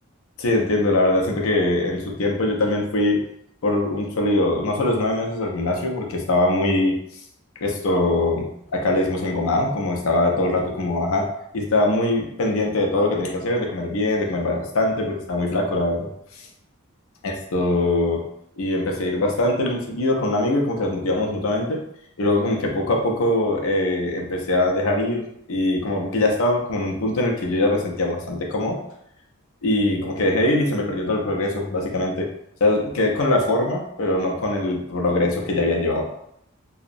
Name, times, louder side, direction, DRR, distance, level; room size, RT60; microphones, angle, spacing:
voice 1, 0.4-3.2 3.6-7.2 7.6-11.3 11.5-16.5 17.2-18.3 18.6-21.8 22.2-28.8 29.6-32.3 32.6-36.0, left 2 dB, 70° left, 0 dB, 0.5 m, -22 dB
2.8 x 2.0 x 2.5 m, 0.76 s
head